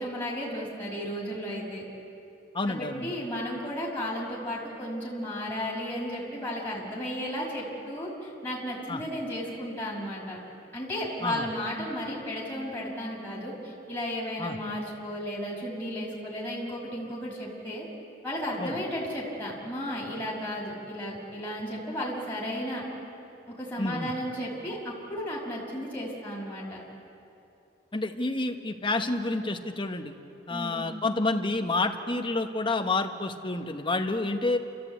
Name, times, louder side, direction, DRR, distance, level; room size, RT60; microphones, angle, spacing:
voice 1, 0.0-1.9 2.7-10.4 10.7-17.8 18.2-22.8 23.6-26.8 30.5-30.9, equal, 10° left, -6 dB, 5.5 m, -34 dB
voice 2, 2.5-3.1 8.9-9.0 11.2-11.4 14.4-14.6 18.6-18.7 23.8-24.1 27.9-30.1 30.5-34.6, left 2 dB, 30° left, 5 dB, 1.2 m, -29 dB
29.0 x 14.5 x 8.4 m, 2.8 s
head